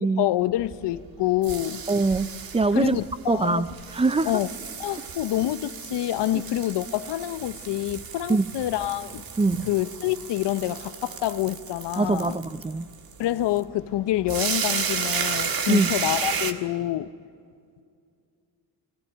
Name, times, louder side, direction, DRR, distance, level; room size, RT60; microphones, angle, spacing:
voice 1, 0.2-1.8 2.7-3.7 4.3-4.5 4.8-9.2 9.6-12.4 13.2-17.1, left 14 dB, 80° left, 14 dB, 0.8 m, -27 dB
sound 1, 0.7-16.5, right 6 dB, 55° right, 1.7 m, -33 dB
voice 2, 1.9-3.7 3.9-4.3 8.3-8.5 9.4-9.7 12.0-12.9 15.7-15.9, right 3 dB, 15° right, 15 dB, 0.5 m, -23 dB
22.5 x 18.0 x 8.9 m, 2.3 s
cardioid pair, 105°, 41 cm